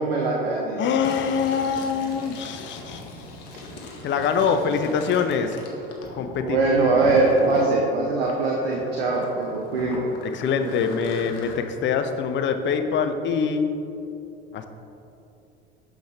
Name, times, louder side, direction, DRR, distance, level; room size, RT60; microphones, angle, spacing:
voice 1, 0.0-0.8 6.4-10.0, right 3 dB, 85° right, -2 dB, 0.7 m, -22 dB
voice 2, 0.8-3.0 4.0-5.6 6.1-6.6 10.2-13.7 14.5-14.7, left 6 dB, 40° left, 8 dB, 0.6 m, -24 dB
Fill (with liquid), 1.0-7.7 8.2-11.5, left 2 dB, 55° left, 1.2 m, -37 dB
7.2 x 5.3 x 3.3 m, 2.8 s
hypercardioid pair, 70°, 29 cm